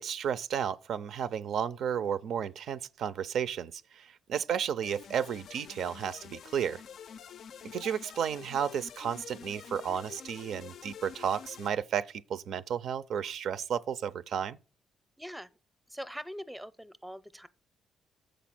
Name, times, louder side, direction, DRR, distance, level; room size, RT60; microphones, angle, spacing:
voice 1, 0.0-6.8 7.7-14.6, right 8 dB, 70° right, 0.4 m, -33 dB
sound 1, 4.8-11.7, left 8 dB, 65° left, 0.4 m, -48 dB
voice 2, 15.2-15.5 15.9-17.5, equal, ahead, 0.6 m, -42 dB
6.8 x 5.1 x 5.8 m
cardioid pair, 90°, 0 cm